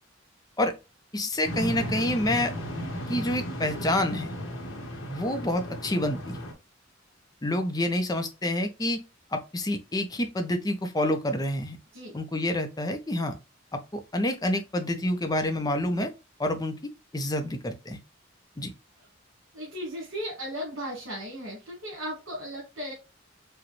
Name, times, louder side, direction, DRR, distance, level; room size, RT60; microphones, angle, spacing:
voice 1, 1.1-2.5 3.1-4.4 5.1-6.4 7.4-9.0 9.3-11.8 12.1-13.3 13.7-16.1 16.4-18.0 18.6-18.7, left 1 dB, 20° left, 0.6 m, -28 dB
sound 1, 1.4-6.5, equal, 80° left, 1.2 m, -35 dB
voice 2, 19.5-22.9, equal, 80° right, 1.7 m, -36 dB
4.8 x 2.2 x 3.1 m
head